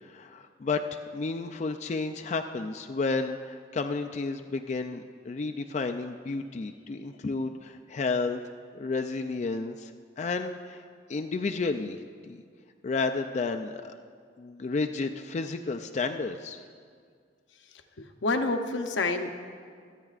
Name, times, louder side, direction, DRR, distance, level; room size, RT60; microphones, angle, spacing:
voice 1, 0.0-8.4 8.7-9.9 10.2-10.8 11.1-12.0 12.3-12.4 12.8-13.9 14.4-16.6, left 3 dB, 40° left, 6 dB, 0.4 m, -31 dB
voice 2, 18.0-19.5, left 3 dB, 80° left, 6 dB, 0.8 m, -29 dB
25.5 x 9.0 x 2.4 m, 2.1 s
head